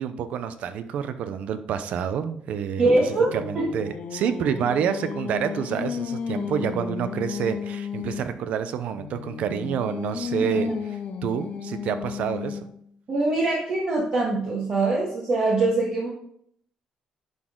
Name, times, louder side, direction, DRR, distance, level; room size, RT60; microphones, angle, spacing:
voice 1, 0.0-10.7 11.2-12.6, right 8 dB, 70° right, 10 dB, 0.7 m, -28 dB
voice 2, 2.8-3.6 13.1-16.1, right 2 dB, 40° right, -4 dB, 1.7 m, -23 dB
Singing, 2.9-8.4 9.0-12.8, left 6 dB, 55° left, 0.6 m, -33 dB
10.5 x 4.2 x 3.8 m, 0.68 s
cardioid pair, 120°, 2 cm